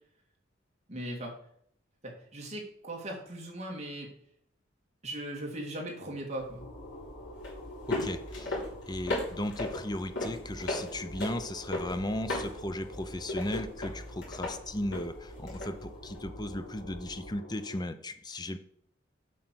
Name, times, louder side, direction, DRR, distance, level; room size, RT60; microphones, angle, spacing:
voice 1, 0.9-1.3 2.0-4.1 5.0-6.7, right 1 dB, 35° right, 0 dB, 2.2 m, -38 dB
sound 1, 6.4-17.3, left 1 dB, 65° left, 3.7 m, -38 dB
sound 2, 6.6-17.8, equal, 85° left, 3.4 m, -49 dB
voice 2, 7.9-8.6 8.9-18.6, left 1 dB, 20° left, 9 dB, 0.6 m, -36 dB
7.5 x 5.5 x 6.2 m, 0.67 s
head